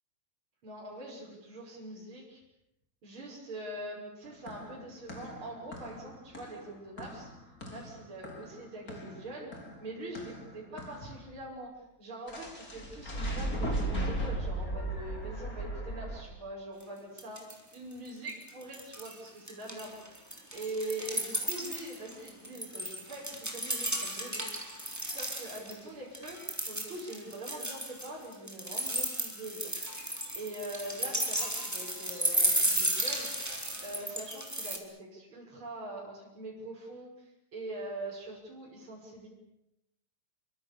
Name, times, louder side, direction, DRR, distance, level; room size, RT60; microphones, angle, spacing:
voice 1, 0.6-2.4 3.0-7.3 7.7-9.5 9.8-20.0 20.5-24.5 25.1-33.3 33.8-39.3, right 1 dB, 35° right, -4 dB, 7.0 m, -43 dB
sound 1, 4.2-11.2 12.3-16.2, right 1 dB, 25° left, 4.2 m, -37 dB
sound 2, 16.8-16.9 17.2-17.7 18.1-19.2 19.5-25.7 26.1-34.8, right 1 dB, 5° right, 3.2 m, -34 dB
28.5 x 25.0 x 7.1 m, 0.85 s
omnidirectional pair, 4.2 m